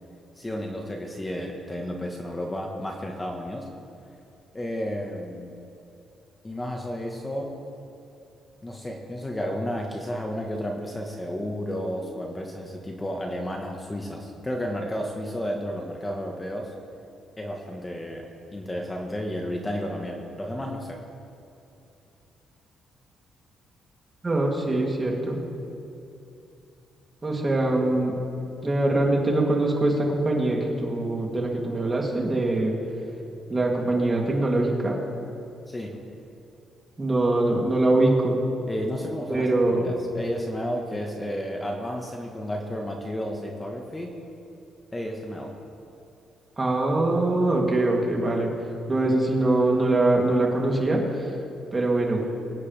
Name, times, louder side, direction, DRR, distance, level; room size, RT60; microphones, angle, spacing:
voice 1, 0.4-3.7 4.5-5.5 6.4-7.6 8.6-16.7 17.4-18.2 18.5-21.0 35.7-36.0 38.7-39.5 39.8-44.2 44.9-45.5, equal, 15° left, 1 dB, 1.4 m, -32 dB
voice 2, 24.2-25.4 27.2-28.1 28.6-32.7 33.5-35.0 37.0-38.4 39.3-39.9 46.6-48.5 48.9-51.3 51.7-52.2, right 2 dB, 25° right, -1 dB, 2.9 m, -23 dB
23.5 x 9.5 x 3.5 m, 2.8 s
cardioid pair, 90°, 0 cm